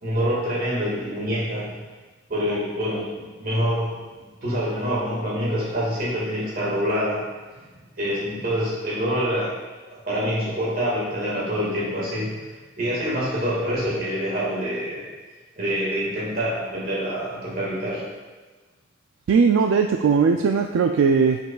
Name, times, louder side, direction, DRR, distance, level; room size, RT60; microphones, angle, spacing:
voice 1, 0.0-1.7 2.3-4.0 4.4-7.2 8.0-9.5 10.0-12.3 12.8-15.0 15.6-18.0, equal, 50° right, -7 dB, 1.8 m, -26 dB
voice 2, 19.3-21.4, right 5 dB, 85° right, 4 dB, 0.3 m, -19 dB
7.6 x 5.4 x 2.3 m, 1.3 s
head